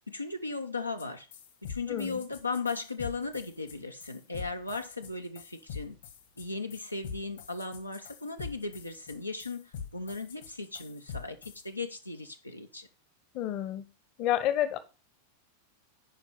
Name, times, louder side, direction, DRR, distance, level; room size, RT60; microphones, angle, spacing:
voice 1, 0.1-1.3 1.6-6.0 6.4-12.9, left 3 dB, 85° left, 0.8 m, -37 dB
sound 1, 1.0-1.1 1.3-11.6, left 6 dB, 60° left, 1.8 m, -44 dB
voice 2, 1.9-2.2 13.3-13.8 14.2-14.8, left 12 dB, 40° left, 1.0 m, -29 dB
10.0 x 5.3 x 5.6 m
figure-of-eight pair, 90°, 0 cm